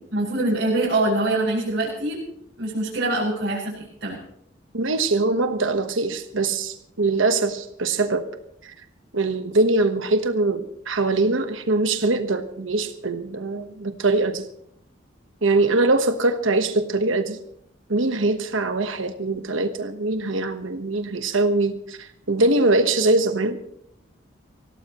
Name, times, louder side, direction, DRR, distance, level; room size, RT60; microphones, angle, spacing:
voice 1, 0.1-2.2 2.6-4.2, right 2 dB, 55° right, -8 dB, 6.0 m, -24 dB
voice 2, 4.7-8.3 8.6-8.7 9.1-14.5 15.4-17.4 17.9-23.6, right 2 dB, 80° right, 8 dB, 1.2 m, -22 dB
24.5 x 17.0 x 3.1 m, 0.73 s
head